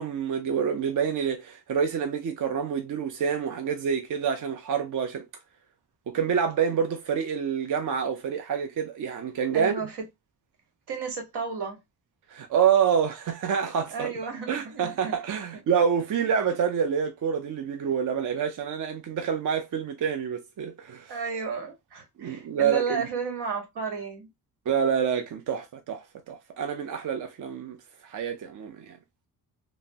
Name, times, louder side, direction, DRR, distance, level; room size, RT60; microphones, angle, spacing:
voice 1, 0.0-5.2 6.1-9.7 12.3-14.1 14.5-21.1 22.2-23.0 24.7-27.8 28.0-29.0, right 7 dB, 50° right, 0.5 m, -27 dB
voice 2, 9.5-10.0 10.9-11.8 13.9-15.1 15.5-15.6 21.1-24.3, right 5 dB, 85° right, 1.2 m, -33 dB
3.3 x 2.0 x 2.5 m
cardioid pair, 115°, 39 cm